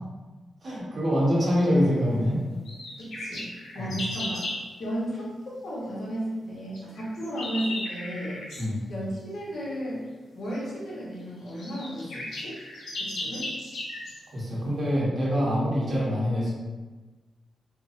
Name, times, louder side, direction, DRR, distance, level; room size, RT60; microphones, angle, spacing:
voice 1, 0.6-2.4 3.7-3.9 8.6-8.8 14.3-16.5, equal, 50° right, -7 dB, 0.9 m, -25 dB
sound 1, 2.6-4.6 6.7-8.7 10.5-10.6 11.2-11.3 11.5-14.2, left 1 dB, 80° left, 0.6 m, -36 dB
voice 2, 3.0-3.5 3.7-4.5 4.8-5.3 5.6-8.4 8.9-10.0 10.3-12.6 13.0-13.5, right 1 dB, 55° left, -7 dB, 0.9 m, -33 dB
2.5 x 2.0 x 2.5 m, 1.3 s
cardioid pair, 100°, 0 cm